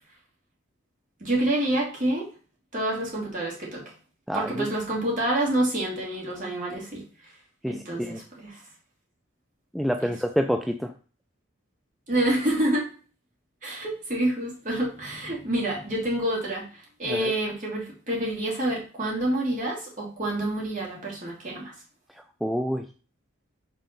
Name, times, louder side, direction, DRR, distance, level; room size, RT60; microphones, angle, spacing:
voice 1, 1.2-2.3 2.7-3.8 4.3-7.3 7.7-8.6 10.0-10.1 12.1-12.9 13.6-21.7, right 1 dB, 40° right, -4 dB, 2.9 m, -28 dB
voice 2, 7.6-8.2 9.7-10.9 17.1-17.3 22.4-22.9, equal, ahead, 5 dB, 0.3 m, -27 dB
5.7 x 4.1 x 5.3 m, 0.38 s
head